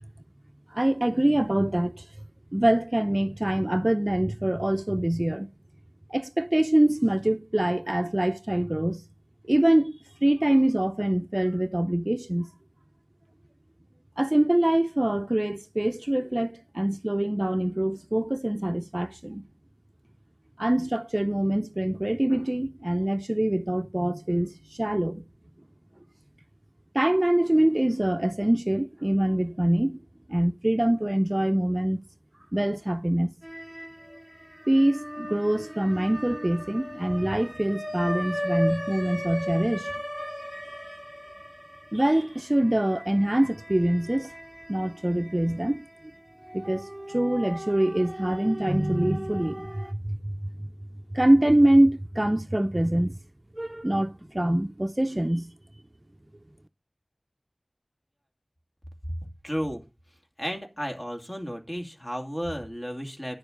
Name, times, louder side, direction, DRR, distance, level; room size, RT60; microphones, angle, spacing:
voice 1, 0.7-2.1 2.5-5.5 6.1-9.0 9.5-12.5 14.2-19.5 20.6-25.2 26.9-30.0 30.3-32.0 32.5-33.3 34.7-40.0 41.9-44.3 44.7-45.8 46.5-50.7 51.1-53.1 53.5-55.5, right 1 dB, 35° right, 0.5 m, -24 dB
sound 1, 33.4-34.2 34.6-44.9 45.3-45.4 46.5-49.9, equal, 5° right, 1.2 m, -36 dB
voice 2, 59.4-59.8 60.4-63.4, equal, 30° left, 2.6 m, -33 dB
11.0 x 6.9 x 5.1 m
wide cardioid pair, 40°, 0 cm